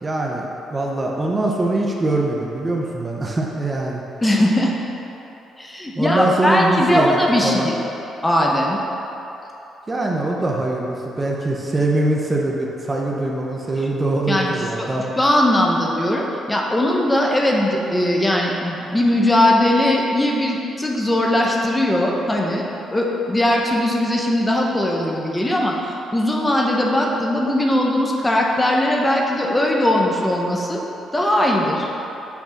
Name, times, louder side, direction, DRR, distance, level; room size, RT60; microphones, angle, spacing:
voice 1, 0.0-4.0 5.9-7.7 9.9-15.1, right 2 dB, 25° right, -1 dB, 0.7 m, -23 dB
voice 2, 4.2-4.7 5.6-7.8 8.2-8.8 14.3-14.5 14.8-14.9 15.2-22.6 22.9-30.8 31.1-31.9, left 1 dB, 15° left, -1 dB, 0.9 m, -19 dB
5.9 x 4.3 x 5.8 m, 3.0 s
cardioid pair, 90°, 0 cm